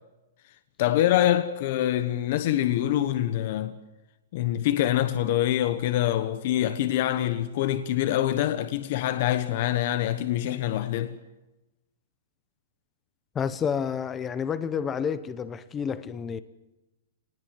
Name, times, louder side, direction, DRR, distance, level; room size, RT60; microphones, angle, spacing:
voice 1, 0.8-3.7 4.3-11.1, left 12 dB, 45° left, 1.2 m, -25 dB
voice 2, 13.3-16.4, left 7 dB, 15° left, 0.9 m, -29 dB
27.5 x 19.5 x 7.7 m
hypercardioid pair, 170°, 0 cm